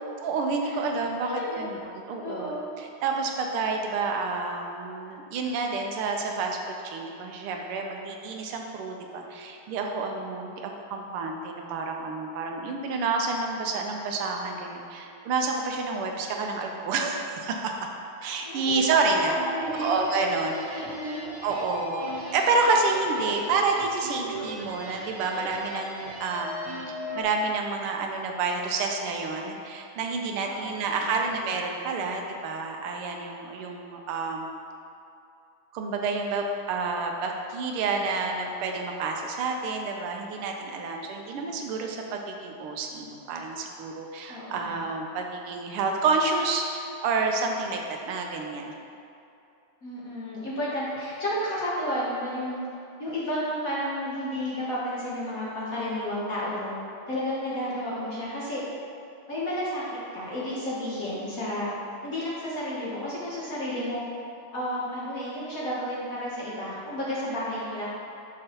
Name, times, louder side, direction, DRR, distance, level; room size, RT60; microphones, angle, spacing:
voice 1, 0.2-17.7 18.2-19.3 19.8-20.9 21.4-26.8 27.1-34.5 35.7-47.8 48.1-48.7, right 3 dB, 85° right, 2 dB, 1.6 m, -29 dB
voice 2, 1.2-1.7 2.2-2.6 18.4-20.0 20.7-21.2 23.2-23.5 30.4-30.7 31.0-31.2 44.3-44.7 49.8-52.6 53.0-56.8 57.1-58.6 59.3-61.7 62.0-64.0 64.5-67.9, equal, 50° left, -7 dB, 1.1 m, -32 dB
sound 1, 19.3-27.2, right 1 dB, 35° right, 1.0 m, -38 dB
6.6 x 6.1 x 2.9 m, 2.6 s
omnidirectional pair, 2.4 m